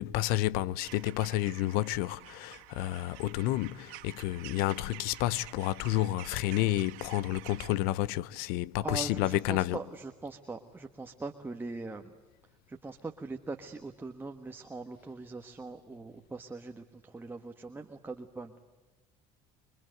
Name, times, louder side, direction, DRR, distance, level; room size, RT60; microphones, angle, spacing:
voice 1, 0.0-9.8, left 15 dB, 75° left, 0.7 m, -30 dB
sound 1, 0.8-7.7, right 19 dB, 85° right, 2.0 m, -50 dB
voice 2, 8.8-12.1 12.7-18.5, right 3 dB, 15° right, 1.4 m, -41 dB
27.0 x 24.0 x 7.9 m
cardioid pair, 120°, 16 cm